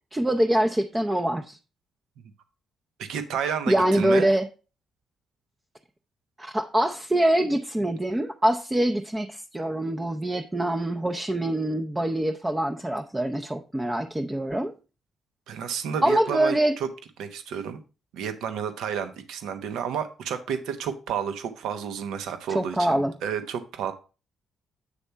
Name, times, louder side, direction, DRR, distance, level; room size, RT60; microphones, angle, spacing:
voice 1, 0.1-1.6 3.7-4.5 6.4-14.7 16.0-16.8 22.5-23.2, right 1 dB, 15° right, 0.6 m, -24 dB
voice 2, 3.0-4.3 15.5-16.9 17.2-17.8 18.1-23.9, right 7 dB, 85° right, 0.9 m, -31 dB
8.2 x 3.4 x 5.5 m
cardioid pair, 90°, 0 cm